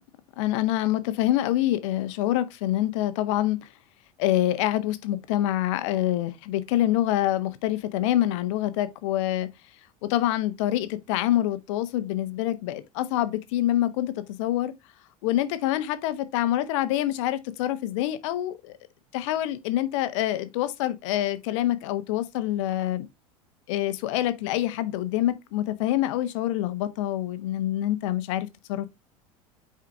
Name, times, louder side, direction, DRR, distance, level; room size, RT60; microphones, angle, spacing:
voice 1, 0.4-3.6 4.2-9.5 10.0-14.7 15.2-18.7 19.1-23.1 23.7-28.9, left 13 dB, 55° left, 0.9 m, -26 dB
5.8 x 4.9 x 3.5 m
figure-of-eight pair, 75°, 19 cm